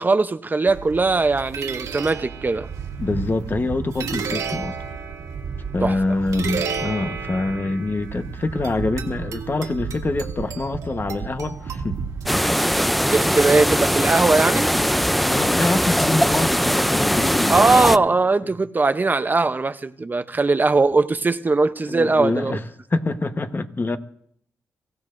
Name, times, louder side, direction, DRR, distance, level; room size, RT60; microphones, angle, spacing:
voice 1, 0.0-2.7 5.8-6.0 13.1-14.8 17.5-22.6, right 3 dB, 35° right, 0.7 m, -20 dB
sound 1, 0.7-12.8, right 6 dB, 85° right, 2.3 m, -32 dB
voice 2, 3.0-4.8 5.7-12.0 15.2-18.0 21.9-22.6 22.9-24.0, left 2 dB, 40° left, 1.2 m, -25 dB
sound 2, 12.3-18.0, equal, ahead, 0.5 m, -20 dB
24.0 x 15.5 x 2.6 m
cardioid pair, 60°, 6 cm